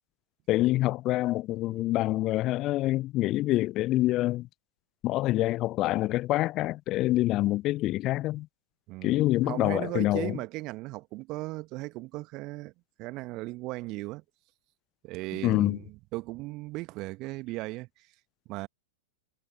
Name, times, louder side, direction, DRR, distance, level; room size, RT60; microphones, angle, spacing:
voice 1, 0.5-4.5 5.0-8.5 9.0-10.4 15.4-15.8, left 16 dB, 35° left, 0.8 m, -26 dB
voice 2, 8.9-12.7 13.0-14.2 15.0-15.8 16.1-17.9 18.5-18.7, right 21 dB, 40° right, 1.3 m, -37 dB
figure-of-eight pair, 95°, 0 cm